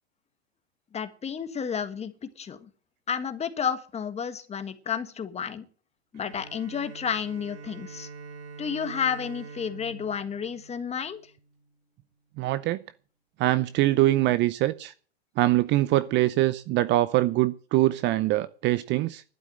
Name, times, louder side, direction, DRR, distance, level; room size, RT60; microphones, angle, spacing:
voice 1, 0.9-2.7 3.1-5.7 6.1-8.1 8.6-11.2, left 7 dB, 20° left, 10 dB, 1.6 m, -31 dB
Bowed string instrument, 6.1-11.6, right 4 dB, 50° right, 6.9 m, -45 dB
voice 2, 12.4-12.8 13.4-14.9 15.4-19.2, right 16 dB, 35° right, 16 dB, 0.6 m, -23 dB
12.0 x 11.0 x 7.7 m, 0.42 s
hypercardioid pair, 115°, 33 cm